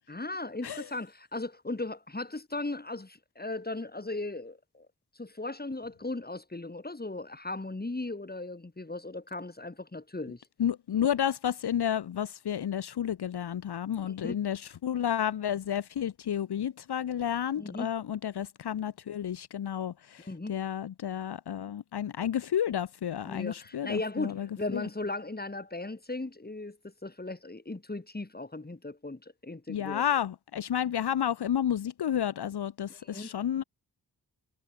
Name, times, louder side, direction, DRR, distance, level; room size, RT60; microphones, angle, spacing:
voice 1, 0.1-4.9 5.2-10.4 14.0-14.4 17.6-17.9 20.2-20.6 23.2-30.0 32.9-33.3, left 2 dB, 25° left, 3.9 m, -37 dB
voice 2, 10.6-24.8 29.7-33.6, left 9 dB, 80° left, 1.0 m, -31 dB
cardioid pair, 60°, 39 cm